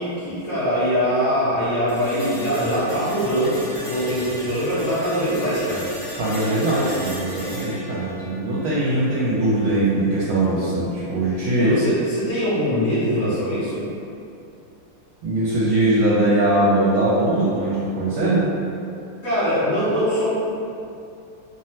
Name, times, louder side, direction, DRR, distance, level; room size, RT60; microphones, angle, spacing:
voice 1, 0.0-5.8 10.7-10.9 11.6-13.9 19.2-20.3, equal, 60° left, -13 dB, 0.8 m, -22 dB
sound 1, 1.9-9.9, equal, 25° left, 0.5 m, -36 dB
voice 2, 6.1-11.7 15.2-18.4, right 1 dB, 80° right, -9 dB, 1.4 m, -21 dB
3.3 x 2.0 x 2.8 m, 2.6 s
omnidirectional pair, 2.3 m